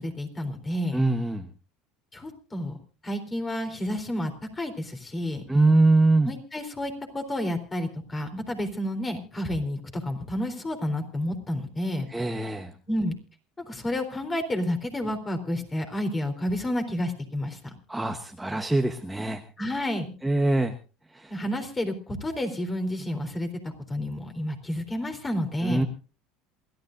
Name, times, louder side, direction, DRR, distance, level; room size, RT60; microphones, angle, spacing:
voice 1, 0.0-1.0 2.1-2.8 3.0-5.4 6.2-12.1 12.9-13.2 13.6-17.7 19.6-20.1 21.3-25.8, left 1 dB, 20° left, 6 dB, 3.8 m, -30 dB
voice 2, 0.9-1.5 5.5-6.3 12.1-12.7 17.9-19.4 20.2-20.7 21.1-21.3 25.6-25.8, right 2 dB, 5° right, 4 dB, 1.1 m, -23 dB
28.0 x 13.0 x 2.6 m, 0.35 s
supercardioid pair, 100°, 0 cm